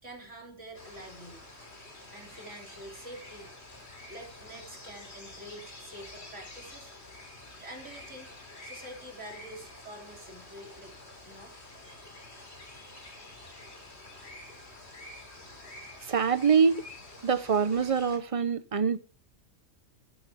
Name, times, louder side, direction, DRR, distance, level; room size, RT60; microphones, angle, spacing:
voice 1, 0.0-1.4 2.1-3.5 4.1-6.9 7.6-8.3 8.6-11.6, right 1 dB, 85° right, 3.9 m, -47 dB
sound 1, 0.7-18.2, left 2 dB, 65° left, 3.2 m, -48 dB
voice 2, 16.0-16.9 17.2-19.0, right 6 dB, 35° right, 0.6 m, -25 dB
13.0 x 11.0 x 3.6 m
omnidirectional pair, 1.2 m